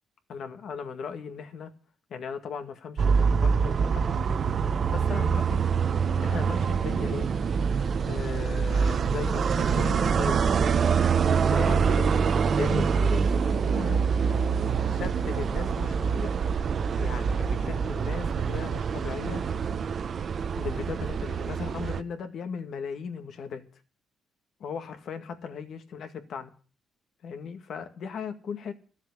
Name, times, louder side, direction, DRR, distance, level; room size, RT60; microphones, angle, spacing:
voice 1, 0.3-1.7 2.1-4.5 4.9-5.6 6.2-7.3 8.0-10.5 11.4-12.2 12.5-14.1 14.8-16.4 17.0-19.4 20.6-23.6 24.6-26.5 27.2-28.7, left 6 dB, 65° left, 1.9 m, -37 dB
sound 1, 3.0-22.0, right 6 dB, 50° right, 0.9 m, -25 dB
13.5 x 7.3 x 9.8 m
cardioid pair, 90°, 0 cm